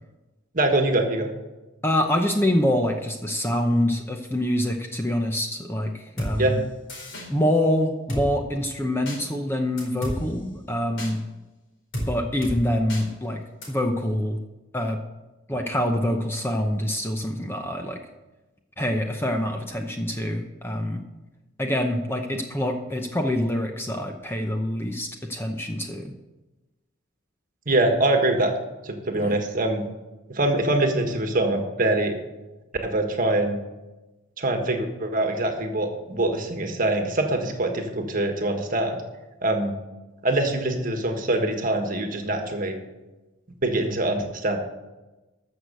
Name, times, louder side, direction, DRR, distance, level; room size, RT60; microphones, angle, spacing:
voice 1, 0.5-1.3 6.4-6.6 27.7-28.5 28.8-29.8 30.3-32.2 32.8-33.6 34.4-39.0 39.4-39.8 40.2-42.8 43.6-44.6, right 2 dB, 40° right, 4 dB, 1.5 m, -24 dB
voice 2, 1.8-6.6 7.3-11.2 12.1-13.4 13.7-14.4 14.7-15.0 15.5-18.0 18.8-21.0 21.6-26.1 29.1-29.4, left 1 dB, 10° left, 3 dB, 0.8 m, -25 dB
Drum kit, 6.2-6.3 6.9-7.3 8.1-8.2 9.1-9.2 9.8-10.2 11.0-11.1 11.9-12.1 12.4-12.6 12.9-13.0 13.6-13.7, equal, 55° left, 4.4 m, -30 dB
14.0 x 6.5 x 6.8 m, 1.1 s
head